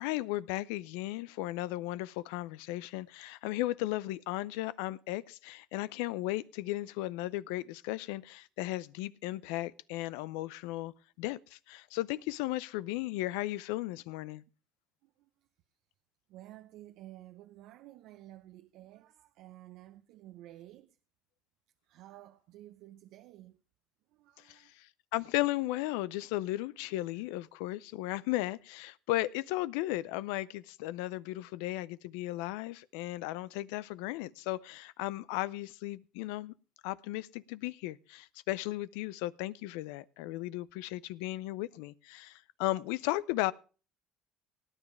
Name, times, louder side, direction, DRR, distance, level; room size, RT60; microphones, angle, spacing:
voice 1, 0.0-14.4 24.4-36.5 36.8-43.5, left 17 dB, 85° left, 0.6 m, -35 dB
voice 2, 16.3-21.0 21.9-23.6 24.1-24.7, right 14 dB, 75° right, 0.7 m, -52 dB
19.0 x 10.0 x 3.3 m
supercardioid pair, 75°, 0 cm